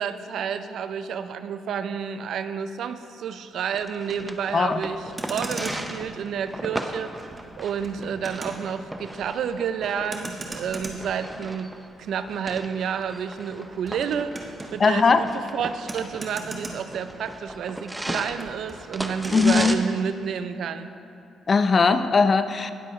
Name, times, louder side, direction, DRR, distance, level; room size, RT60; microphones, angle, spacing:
voice 1, 0.0-20.9, right 7 dB, 70° right, 11 dB, 0.5 m, -30 dB
sound 1, 3.7-19.7, right 1 dB, 10° right, 0.7 m, -37 dB
Motor vehicle (road), 5.0-17.6 17.9-19.8, right 2 dB, 25° right, 1.4 m, -40 dB
voice 2, 14.8-15.3 19.3-19.7 21.5-22.7, left 4 dB, 40° left, 11 dB, 0.5 m, -19 dB
19.0 x 7.6 x 3.2 m, 2.6 s
cardioid pair, 90°, 0 cm